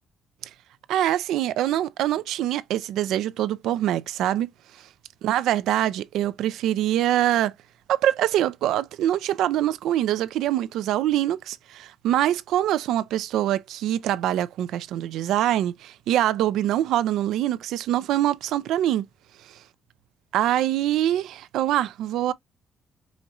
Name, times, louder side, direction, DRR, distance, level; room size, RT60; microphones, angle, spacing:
voice 1, 0.9-4.5 5.2-7.5 7.9-19.1 20.3-22.3, right 12 dB, 85° right, 0.4 m, -24 dB
5.1 x 3.0 x 2.4 m
cardioid pair, 90°, 0 cm